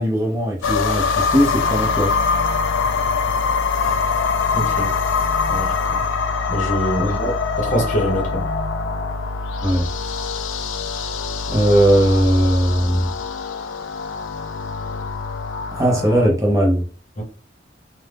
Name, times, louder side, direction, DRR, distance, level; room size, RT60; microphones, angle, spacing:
voice 1, 0.0-2.1 7.0-7.3 9.6-9.9 11.5-13.1 15.7-16.8, equal, 15° right, 0.7 m, -18 dB
sound 1, 0.6-16.3, left 5 dB, 75° left, 0.3 m, -23 dB
voice 2, 4.5-4.9 5.5-6.0 6.5-7.2 7.6-8.5 17.2-17.3, equal, 40° left, 0.9 m, -24 dB
2.6 x 2.1 x 3.3 m
head